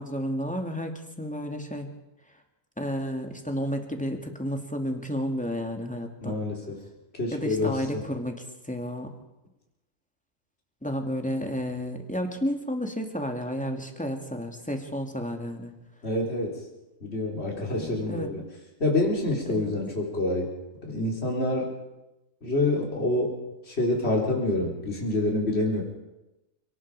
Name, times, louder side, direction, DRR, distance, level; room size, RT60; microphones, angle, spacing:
voice 1, 0.0-1.9 2.8-6.4 7.3-8.3 8.6-9.1 10.8-15.7 17.8-18.3 19.5-19.7, equal, 5° left, 4 dB, 2.4 m, -31 dB
voice 2, 6.2-6.8 7.2-8.0 16.0-16.6 17.0-18.4 18.8-20.6 20.8-21.7 22.4-23.4 23.7-25.8, left 2 dB, 50° left, -1 dB, 4.2 m, -27 dB
29.0 x 19.0 x 4.9 m, 0.96 s
omnidirectional pair, 1.4 m